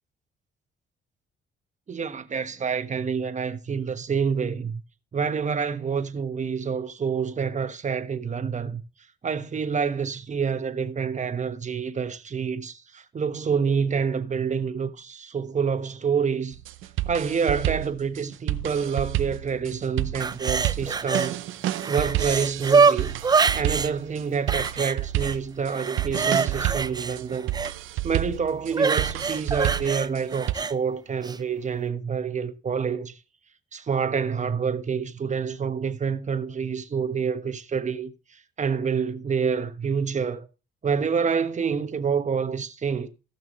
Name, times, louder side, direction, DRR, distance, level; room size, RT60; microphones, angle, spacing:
voice 1, 1.9-4.8 5.1-8.8 9.2-16.6 17.1-21.4 21.9-23.1 23.5-27.5 28.0-33.2 33.7-38.1 38.6-40.5 40.8-43.1, right 6 dB, 35° right, 1.2 m, -27 dB
sound 1, 16.5-30.5, right 14 dB, 85° right, 0.6 m, -30 dB
sound 2, 20.2-21.3 21.6-23.9 24.5-25.4 25.7-27.7 28.7-30.7 31.2-31.4, right 5 dB, 20° right, 0.4 m, -24 dB
17.5 x 6.0 x 3.1 m
cardioid pair, 90°, 20 cm